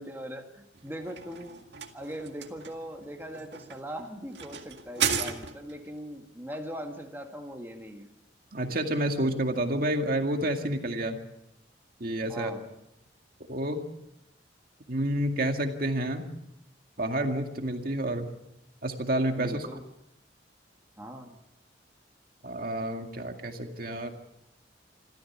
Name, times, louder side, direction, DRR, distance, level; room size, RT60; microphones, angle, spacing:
voice 1, 0.0-1.6 1.9-8.1 12.3-12.6 19.4-19.8 21.0-21.4, equal, 10° right, 2 dB, 1.8 m, -40 dB
sound 1, 0.7-5.9, right 7 dB, 65° right, 2.0 m, -35 dB
voice 2, 8.5-11.2 12.0-12.5 13.5-13.9 14.9-16.3 17.0-18.3 18.8-19.7 22.4-24.1, right 1 dB, 50° right, 4 dB, 2.1 m, -29 dB
27.0 x 14.5 x 7.3 m, 0.85 s
head